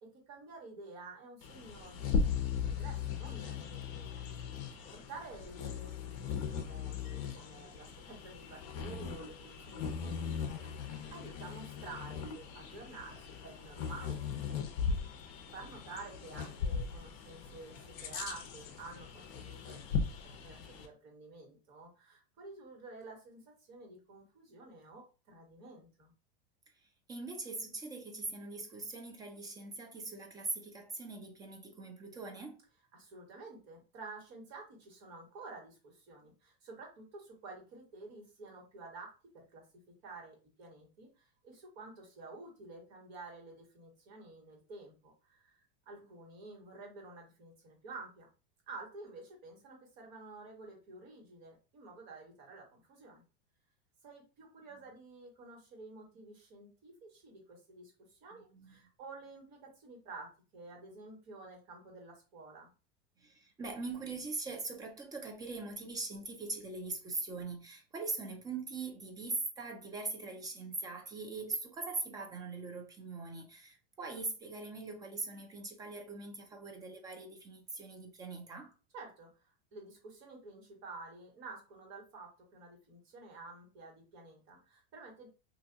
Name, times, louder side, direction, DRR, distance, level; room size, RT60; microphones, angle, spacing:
voice 1, 0.0-2.1 2.7-4.3 4.9-13.2 13.4-14.2 14.5-14.9 15.2-20.0 20.2-26.1 32.9-39.6 40.0-48.3 48.7-53.2 54.0-57.9 58.2-62.7 78.9-85.3, right 3 dB, 50° right, 1.6 m, -51 dB
Bird vocalization bird call bird song, 1.4-20.9, left 6 dB, 45° left, 0.7 m, -38 dB
voice 2, 27.1-32.6 58.5-58.7 63.2-78.7, right 3 dB, 10° right, 0.4 m, -41 dB
2.8 x 2.2 x 3.9 m
supercardioid pair, 145°, 33 cm